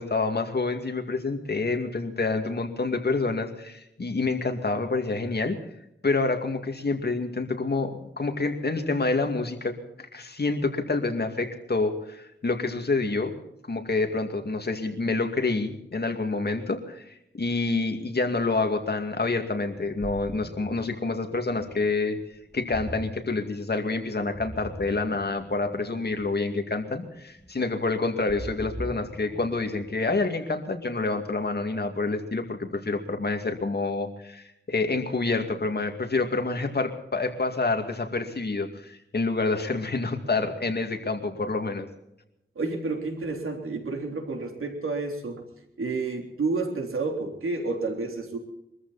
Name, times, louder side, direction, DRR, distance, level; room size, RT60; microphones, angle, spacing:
voice 1, 0.0-5.6 6.0-13.3 13.7-22.2 22.5-41.9, left 3 dB, 50° left, 5 dB, 2.3 m, -28 dB
Ocean, 19.7-30.3, right 1 dB, 10° right, 7.1 m, -42 dB
voice 2, 42.6-45.4 45.8-48.4, right 3 dB, 85° right, 2 dB, 3.6 m, -30 dB
23.5 x 14.0 x 4.2 m, 0.81 s
wide cardioid pair, 85°, 21 cm